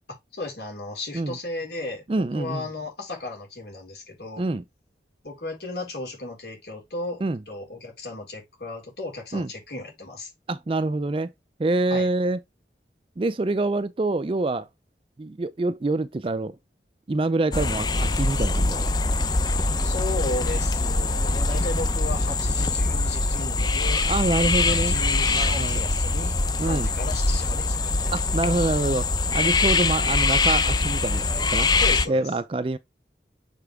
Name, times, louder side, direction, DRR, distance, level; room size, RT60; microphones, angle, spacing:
voice 1, 0.3-2.0 2.3-4.4 5.2-10.3 11.9-12.1 19.8-24.0 24.8-28.1 31.8-32.3, left 2 dB, 70° left, 4.3 m, -35 dB
voice 2, 2.1-2.7 4.4-4.6 7.2-7.4 9.3-9.5 10.5-11.3 11.6-12.4 13.2-14.7 15.2-16.6 17.1-18.9 24.1-25.0 25.3-25.8 26.6-26.9 28.1-31.8 32.1-32.8, right 2 dB, 30° right, 0.4 m, -26 dB
sound 1, 17.5-32.1, left 3 dB, 25° left, 0.6 m, -23 dB
6.9 x 4.4 x 3.5 m
head